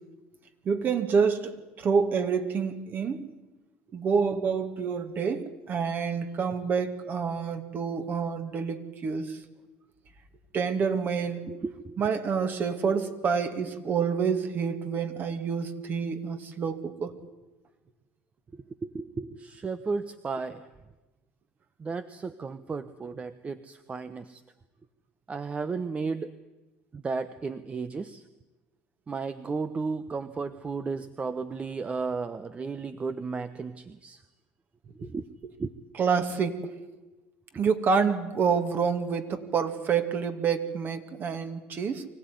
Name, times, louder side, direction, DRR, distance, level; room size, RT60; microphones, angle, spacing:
voice 1, 0.6-3.3 3.9-9.4 10.5-11.5 12.0-17.1 35.0-35.1 35.4-35.5 36.0-36.7 37.5-42.1, right 6 dB, 45° right, 8 dB, 2.3 m, -28 dB
voice 2, 11.5-12.0 18.5-20.7 21.8-24.4 25.3-26.3 26.9-28.2 29.1-34.2 35.0-35.2 35.6-35.7, right 4 dB, 25° right, 12 dB, 1.0 m, -34 dB
24.5 x 16.0 x 9.7 m, 1.1 s
supercardioid pair, 90°, 5 cm